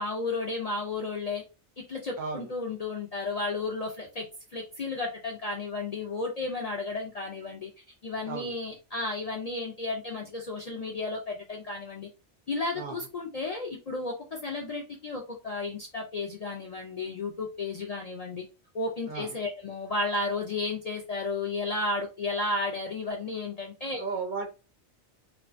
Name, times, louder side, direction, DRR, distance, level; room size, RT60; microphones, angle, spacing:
voice 1, 0.0-1.4 1.9-4.2 4.5-7.7 8.0-12.1 12.5-18.4 18.7-24.0, left 3 dB, 60° left, 0 dB, 0.4 m, -33 dB
voice 2, 2.2-2.5 8.3-8.5 12.7-13.1 19.1-19.4 23.9-24.5, right 4 dB, 60° right, 4 dB, 0.5 m, -35 dB
2.9 x 2.2 x 2.4 m, 0.30 s
omnidirectional pair, 1.2 m